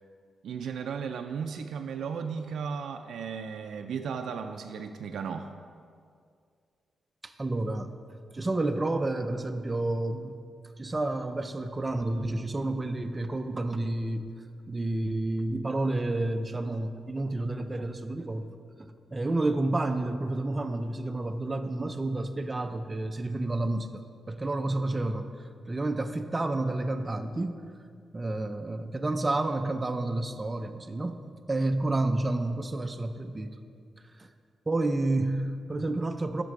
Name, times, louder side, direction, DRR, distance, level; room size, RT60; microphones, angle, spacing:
voice 1, 0.4-5.5, right 6 dB, 75° right, 5 dB, 0.4 m, -35 dB
voice 2, 7.2-7.9 8.3-10.4 10.8-14.3 14.7-25.3 25.7-27.6 28.1-31.2 31.5-33.6 34.2-34.3 34.7-36.4, right 2 dB, 20° right, 7 dB, 0.4 m, -30 dB
11.5 x 6.0 x 4.8 m, 2.2 s
wide cardioid pair, 165°, 0 cm